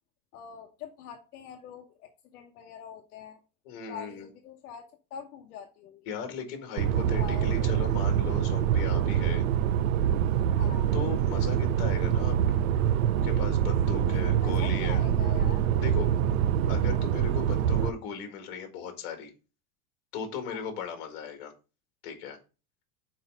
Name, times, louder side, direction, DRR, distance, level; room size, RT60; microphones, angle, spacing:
voice 1, 0.3-3.4 3.9-6.1 7.2-7.9 10.6-10.9 14.0-15.7 20.4-20.7, left 7 dB, 70° left, 1.1 m, -44 dB
voice 2, 3.7-4.3 6.1-9.5 10.9-12.4 13.2-15.0 15.8-16.1 16.7-19.3 20.1-21.5 22.0-22.4, left 6 dB, 40° left, 1.9 m, -37 dB
sound 1, 6.8-17.9, right 9 dB, 65° right, 0.6 m, -25 dB
5.7 x 4.7 x 5.3 m
supercardioid pair, 180°, 45 cm